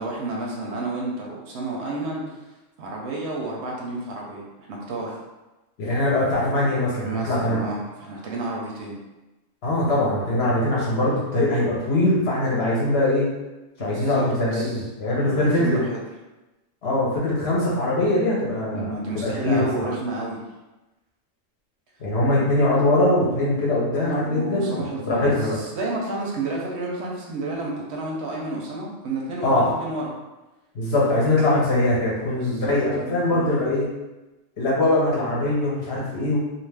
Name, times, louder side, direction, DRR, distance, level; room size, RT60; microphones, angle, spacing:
voice 1, 0.0-2.4 2.8-5.2 7.0-9.0 13.8-14.8 15.2-16.0 18.7-20.4 24.0-30.1 32.3-33.5, right 2 dB, 65° right, -2 dB, 0.8 m, -31 dB
voice 2, 5.8-7.6 9.6-13.3 13.8-15.8 16.8-18.9 19.1-19.9 22.0-25.6 29.4-29.7 30.7-33.9 34.6-36.4, left 1 dB, 60° left, -6 dB, 0.9 m, -22 dB
2.4 x 2.3 x 3.2 m, 1.1 s
omnidirectional pair, 1.3 m